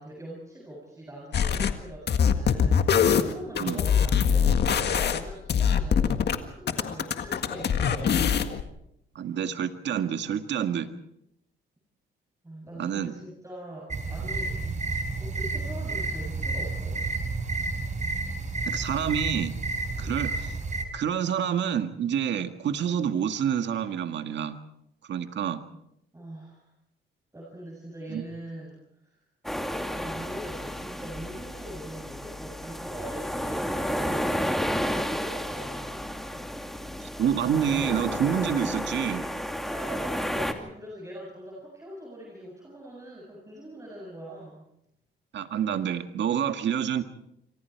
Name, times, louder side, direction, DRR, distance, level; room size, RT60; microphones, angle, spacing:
voice 1, 0.0-8.4 12.4-14.6 15.2-17.0 20.0-20.3 26.1-26.7 27.3-29.2 29.9-36.0 39.6-44.6, right 1 dB, 15° right, -2 dB, 7.7 m, -42 dB
sound 1, 1.3-1.7 2.1-6.4 6.7-8.6, left 7 dB, 55° left, 1.8 m, -23 dB
voice 2, 9.2-10.9 12.8-13.1 18.6-19.5 20.0-20.6 20.9-24.6 25.1-25.6 28.1-28.2 37.0-39.3 45.3-47.0, right 8 dB, 65° right, 8 dB, 1.9 m, -28 dB
sound 2, 13.9-20.8, right 3 dB, 35° right, 4.7 m, -31 dB
sound 3, 29.4-40.5, equal, ahead, 2.6 m, -32 dB
28.0 x 25.0 x 4.7 m, 0.78 s
cardioid pair, 90°, 20 cm